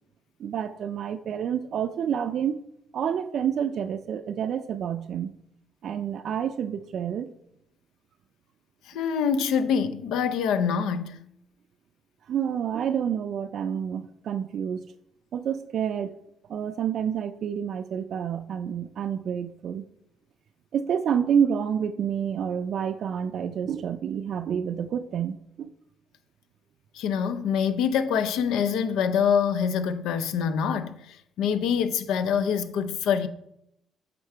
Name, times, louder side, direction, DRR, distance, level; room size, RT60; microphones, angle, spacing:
voice 1, 0.4-2.6 2.9-5.3 5.8-7.3 12.3-14.8 15.3-16.1 16.5-19.8 20.7-25.7, right 8 dB, 65° right, 0.3 m, -28 dB
voice 2, 8.9-11.2 26.9-33.3, left 7 dB, 90° left, 0.5 m, -25 dB
7.9 x 3.8 x 4.5 m
cardioid pair, 90°, 0 cm